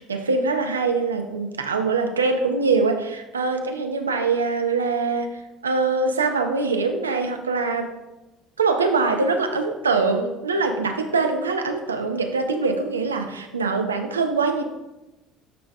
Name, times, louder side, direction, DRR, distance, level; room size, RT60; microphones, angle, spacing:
voice 1, 0.1-5.3 5.6-8.0 8.6-14.6, right 4 dB, 90° right, 5 dB, 0.6 m, -23 dB
11.5 x 5.1 x 2.4 m, 1.0 s
hypercardioid pair, 60°, 0 cm